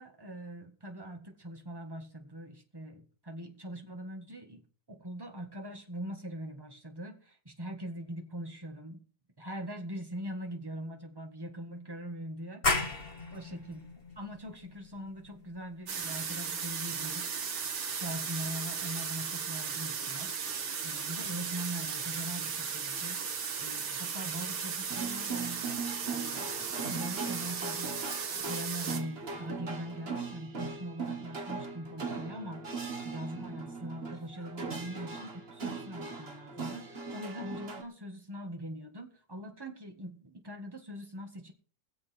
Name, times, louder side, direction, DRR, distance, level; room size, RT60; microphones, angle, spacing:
voice 1, 0.0-9.0 9.4-12.9 13.3-13.8 14.1-17.3 17.9-23.3 23.6-25.8 26.1-28.0 28.4-32.7 33.0-41.5, equal, 15° right, 3 dB, 1.6 m, -42 dB
sound 1, 12.6-18.0, left 2 dB, 30° left, 1.9 m, -36 dB
sound 2, 15.9-29.0, right 6 dB, 80° right, 2.4 m, -36 dB
sound 3, 24.9-37.8, right 4 dB, 35° right, 1.7 m, -39 dB
22.0 x 7.5 x 4.5 m, 0.41 s
omnidirectional pair, 2.0 m